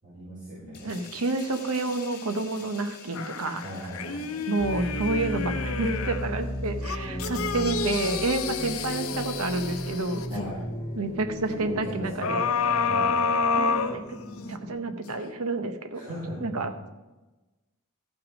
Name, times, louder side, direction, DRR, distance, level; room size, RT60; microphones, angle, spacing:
voice 1, 0.0-0.9 3.6-4.5 7.0-7.6 10.3-10.6 11.5-12.3 12.9-13.1 15.9-16.4, right 1 dB, 40° right, -10 dB, 4.4 m, -38 dB
sound 1, 0.7-7.9 8.3-8.5, left 6 dB, 45° left, 2.8 m, -49 dB
voice 2, 0.8-3.6 4.5-10.2 11.0-12.5 13.5-14.0 14.5-16.0 16.4-16.9, right 2 dB, 75° right, 8 dB, 0.9 m, -29 dB
sound 2, 3.1-6.3 6.8-10.5 12.2-14.5 15.1-15.2, left 5 dB, 65° left, 0.8 m, -29 dB
sound 3, 4.6-14.8, equal, 25° left, 2.2 m, -36 dB
14.0 x 5.9 x 5.2 m, 1.1 s
head